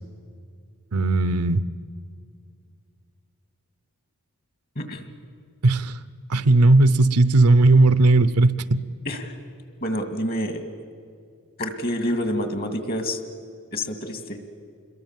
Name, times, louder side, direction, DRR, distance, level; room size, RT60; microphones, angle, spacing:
voice 1, 0.9-1.6 5.6-6.0 6.3-8.8, right 2 dB, 80° right, 14 dB, 0.8 m, -17 dB
voice 2, 4.8-5.1 9.1-9.4 9.8-10.6 11.6-13.2 13.7-14.4, equal, 45° left, 8 dB, 2.2 m, -28 dB
27.0 x 22.0 x 7.4 m, 2.3 s
head